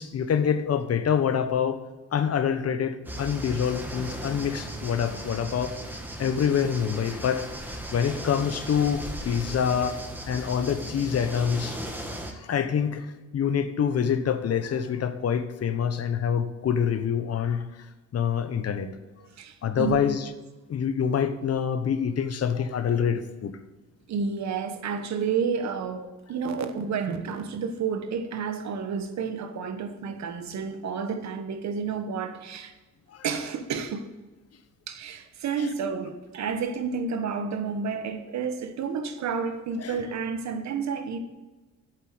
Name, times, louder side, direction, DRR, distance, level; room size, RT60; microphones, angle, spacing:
voice 1, 0.0-1.8 2.1-5.7 6.2-7.4 7.9-11.8 12.3-13.1 13.3-17.7 18.1-18.9 19.6-20.3 20.7-23.5 33.1-33.3 35.6-35.7 39.8-40.1, left 7 dB, 55° left, 10 dB, 1.1 m, -26 dB
sound 1, 3.0-12.3, right 1 dB, 5° right, 1.8 m, -37 dB
voice 2, 19.2-20.1 24.1-32.7 33.2-34.1 34.9-41.2, right 6 dB, 65° right, 8 dB, 1.3 m, -30 dB
8.1 x 7.7 x 8.0 m, 1.2 s
cardioid pair, 90°, 30 cm